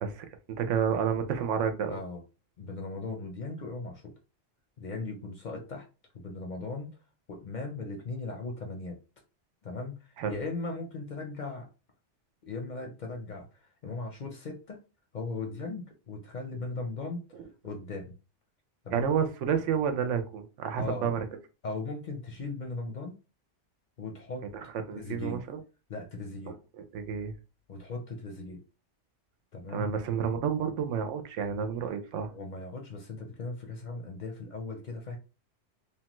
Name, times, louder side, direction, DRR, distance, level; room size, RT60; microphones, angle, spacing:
voice 1, 0.0-2.0 10.2-10.4 18.9-21.2 24.9-25.6 26.9-27.3 29.7-32.3, right 7 dB, 85° right, 7 dB, 0.9 m, -30 dB
voice 2, 1.9-2.2 2.6-4.1 4.8-5.9 6.1-6.9 7.3-9.0 9.6-11.7 12.4-14.8 15.1-17.2 17.6-18.1 18.8-19.1 20.7-21.1 21.6-23.2 24.0-24.5 24.9-25.4 25.9-26.6 27.7-28.6 29.5-29.9 32.3-35.2, left 3 dB, 50° left, 2 dB, 0.6 m, -38 dB
3.0 x 2.2 x 2.9 m, 0.32 s
omnidirectional pair, 1.2 m